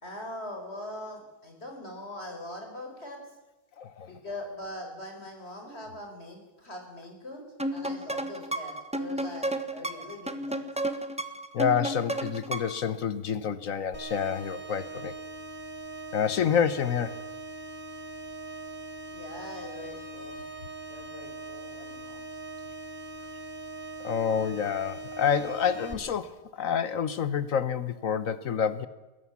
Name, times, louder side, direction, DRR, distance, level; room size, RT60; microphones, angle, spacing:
voice 1, 0.0-3.2 4.0-7.5 7.7-10.7 19.1-20.4 20.9-22.2, left 1 dB, 35° left, 3 dB, 5.0 m, -42 dB
voice 2, 3.8-4.1 11.5-15.1 16.1-17.2 24.0-28.9, left 7 dB, 55° left, 14 dB, 1.1 m, -28 dB
sound 1, 7.6-12.9, right 1 dB, 5° right, 1.0 m, -32 dB
sound 2, 13.9-25.9, right 2 dB, 10° left, 2.2 m, -41 dB
21.5 x 17.0 x 7.2 m, 1.1 s
omnidirectional pair, 1.9 m